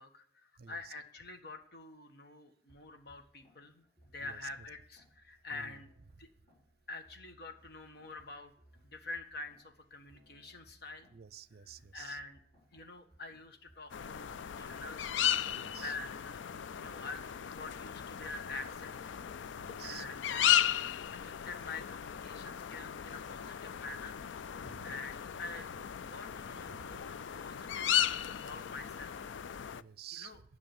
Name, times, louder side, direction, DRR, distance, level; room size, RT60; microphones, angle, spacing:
voice 1, 0.0-3.8 4.1-5.9 6.2-6.3 6.9-8.5 8.8-11.1 11.9-12.4 12.7-15.2 15.8-16.4 16.7-19.2 19.8-20.7 21.2-24.1 24.8-25.7 26.0-29.1 30.2-30.4, left 3 dB, 60° left, 6 dB, 1.5 m, -46 dB
voice 2, 0.6-0.9 4.2-4.7 5.5-5.9 11.1-12.2 15.5-15.9 19.6-20.1 24.6-25.0 26.7-27.0 29.7-30.4, right 9 dB, 55° right, 17 dB, 0.5 m, -51 dB
sound 1, 2.7-14.8, right 1 dB, 30° left, 4.8 m, -65 dB
sound 2, 13.9-29.8, left 10 dB, 75° left, 0.4 m, -35 dB
11.0 x 6.1 x 8.9 m, 0.64 s
head